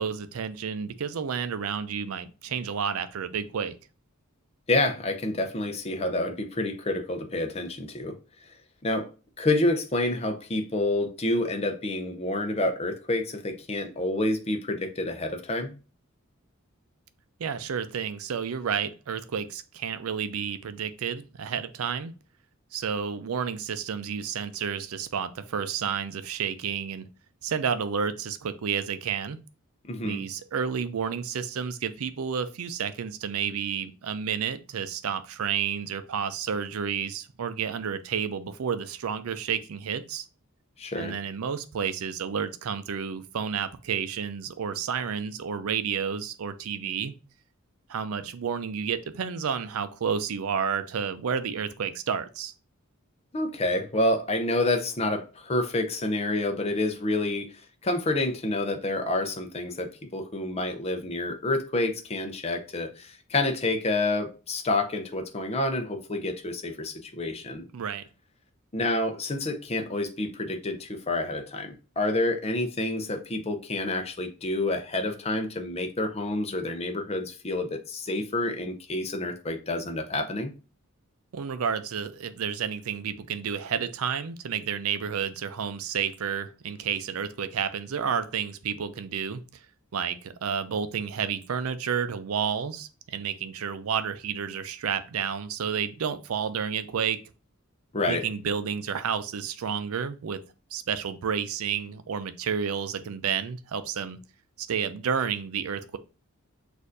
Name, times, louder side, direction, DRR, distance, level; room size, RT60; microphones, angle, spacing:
voice 1, 0.0-3.8 17.4-22.1 22.7-27.1 27.4-29.4 30.0-40.3 41.0-47.1 47.9-52.5 67.7-68.0 81.3-89.4 89.9-97.2 98.1-100.4 100.7-104.2 104.6-106.0, right 7 dB, 80° right, 0.5 m, -30 dB
voice 2, 4.7-8.2 8.8-9.1 9.4-15.8 29.8-30.2 40.8-41.1 53.3-67.7 68.7-80.5 97.9-98.2, left 2 dB, 30° left, 0.6 m, -28 dB
6.3 x 2.6 x 2.6 m
head